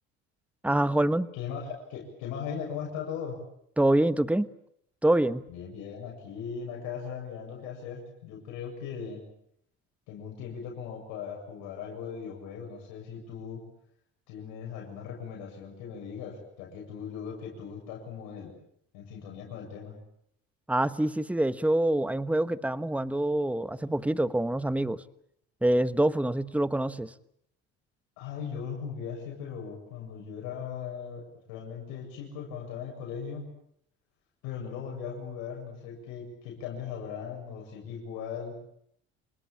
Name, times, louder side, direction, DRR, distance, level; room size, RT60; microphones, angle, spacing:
voice 1, 0.6-1.3 3.8-4.5 5.0-5.5 20.7-25.0 25.6-27.1, right 1 dB, 5° right, 14 dB, 1.2 m, -25 dB
voice 2, 1.3-3.4 5.5-9.2 10.1-13.6 14.3-18.5 18.9-19.9 28.2-33.5 34.4-38.6, left 7 dB, 85° left, 0 dB, 7.6 m, -38 dB
28.0 x 19.5 x 8.7 m, 0.71 s
supercardioid pair, 85°, 30 cm